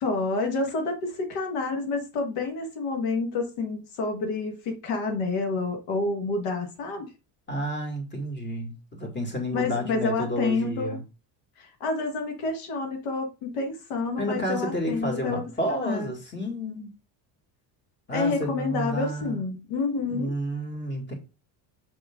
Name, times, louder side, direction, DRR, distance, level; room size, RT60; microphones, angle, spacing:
voice 1, 0.0-7.1 9.5-11.0 11.6-16.1 18.1-20.3, left 3 dB, 85° left, 1.7 m, -29 dB
voice 2, 7.5-11.0 14.2-16.9 18.1-19.4 20.1-21.1, equal, 20° left, 2.2 m, -31 dB
7.5 x 3.6 x 3.7 m
cardioid pair, 120°, 49 cm